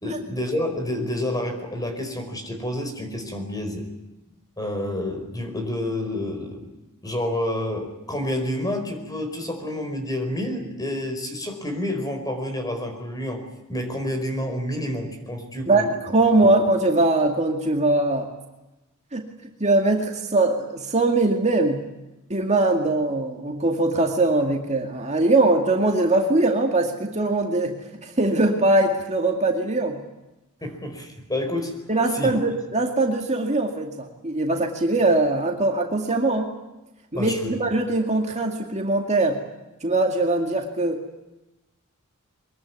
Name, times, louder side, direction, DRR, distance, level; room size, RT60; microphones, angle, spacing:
voice 1, 0.0-3.9 4.6-6.7 7.0-13.4 13.7-15.9 16.4-16.6 30.6-31.7 32.1-32.3 37.1-37.6, left 1 dB, 15° left, 5 dB, 4.9 m, -29 dB
voice 2, 15.7-18.3 19.1-19.3 19.6-21.8 22.3-30.0 31.9-36.5 37.1-39.4 39.8-41.2, right 2 dB, 30° right, 2 dB, 2.2 m, -21 dB
23.5 x 22.0 x 9.6 m, 0.99 s
head